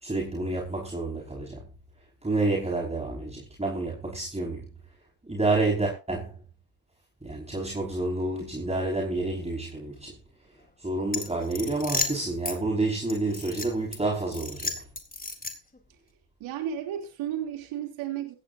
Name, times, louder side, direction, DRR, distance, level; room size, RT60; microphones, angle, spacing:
voice 1, 0.0-1.6 2.2-4.7 5.2-6.3 7.2-10.1 10.8-14.8, right 2 dB, 15° right, 5.5 m, -29 dB
sound 1, 11.1-12.6 13.1-14.0 14.3-15.8, left 3 dB, 15° left, 3.8 m, -33 dB
voice 2, 16.4-18.3, right 10 dB, 75° right, 3.3 m, -33 dB
17.0 x 15.5 x 2.7 m
supercardioid pair, 65°, 48 cm